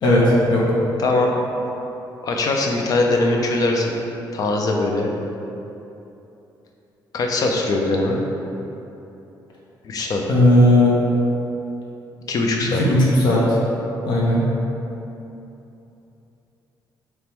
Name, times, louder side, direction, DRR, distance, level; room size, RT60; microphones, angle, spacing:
voice 1, 0.0-0.6 10.3-10.9 12.7-13.6 14.1-14.5, left 1 dB, 70° left, -5 dB, 0.8 m, -16 dB
voice 2, 1.0-1.3 2.2-3.9 4.3-5.1 7.1-8.2 9.8-10.2 12.3-12.8, left 2 dB, 50° left, 1 dB, 0.5 m, -21 dB
3.5 x 3.0 x 4.4 m, 2.9 s
cardioid pair, 150°, 8 cm